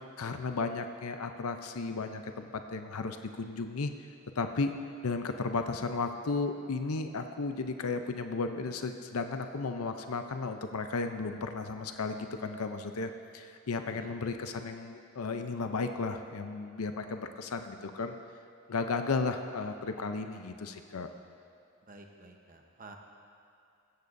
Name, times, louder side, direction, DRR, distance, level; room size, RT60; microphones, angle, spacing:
voice 1, 0.2-3.9 4.4-4.8 5.0-18.2 18.7-21.1, left 4 dB, 80° left, 7 dB, 0.6 m, -34 dB
voice 2, 21.9-23.0, right 3 dB, 40° right, 2 dB, 1.0 m, -51 dB
15.5 x 14.5 x 2.7 m, 2.6 s
head